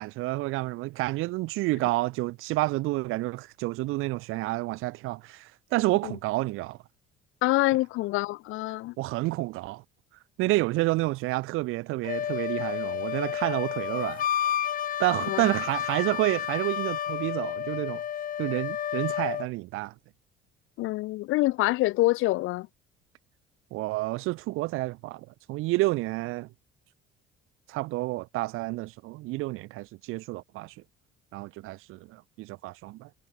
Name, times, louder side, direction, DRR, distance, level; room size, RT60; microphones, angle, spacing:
voice 1, 0.0-6.8 9.0-9.8 10.4-14.2 15.0-18.0 18.4-19.9 23.7-26.5 27.7-30.7 31.3-33.1, right 20 dB, 80° right, 4.3 m, -29 dB
voice 2, 7.4-8.9 15.2-15.5 20.8-22.7, left 19 dB, 75° left, 4.4 m, -26 dB
Wind instrument woodwind instrument, 12.0-19.5, left 10 dB, 40° left, 5.8 m, -31 dB
cardioid pair, 160°, 21 cm